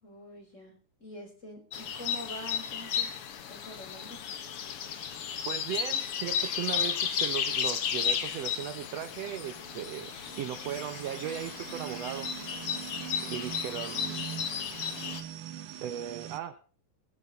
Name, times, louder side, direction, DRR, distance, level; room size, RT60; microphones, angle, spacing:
voice 1, 0.0-4.3, equal, 20° left, 2 dB, 4.4 m, -46 dB
sound 1, 1.7-15.2, left 8 dB, 55° left, 1.9 m, -34 dB
voice 2, 5.4-12.3 13.2-14.3 15.8-16.6, right 11 dB, 70° right, 11 dB, 1.6 m, -37 dB
sound 2, 8.0-16.4, right 11 dB, 90° right, 2.7 m, -43 dB
18.5 x 10.5 x 4.1 m, 0.40 s
omnidirectional pair, 3.6 m